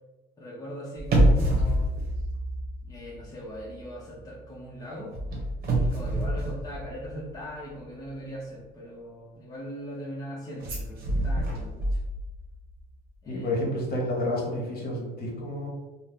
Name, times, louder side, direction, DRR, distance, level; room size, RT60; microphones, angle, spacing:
voice 1, 0.4-1.9 2.8-5.1 5.8-12.0 13.2-13.8, equal, 20° left, -5 dB, 0.8 m, -40 dB
sound 1, 1.0-3.3 3.5-3.8 5.1-7.4 10.6-12.5 12.8-12.9, right 1 dB, 45° right, 1.0 m, -26 dB
voice 2, 13.3-15.7, left 1 dB, 45° left, -2 dB, 1.0 m, -30 dB
2.6 x 2.1 x 3.5 m, 1.1 s
supercardioid pair, 80°, 21 cm